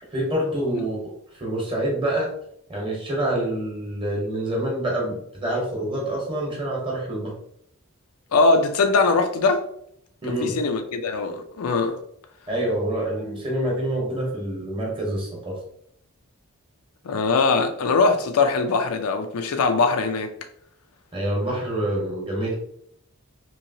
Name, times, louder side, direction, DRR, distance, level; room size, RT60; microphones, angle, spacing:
voice 1, 0.1-2.3 2.7-7.3 10.2-10.6 12.5-15.6 21.1-22.5, right 1 dB, 25° right, 0.9 m, -26 dB
voice 2, 8.3-9.6 10.3-12.0 17.0-20.3, left 4 dB, 80° left, 0.5 m, -21 dB
3.0 x 2.7 x 2.7 m
head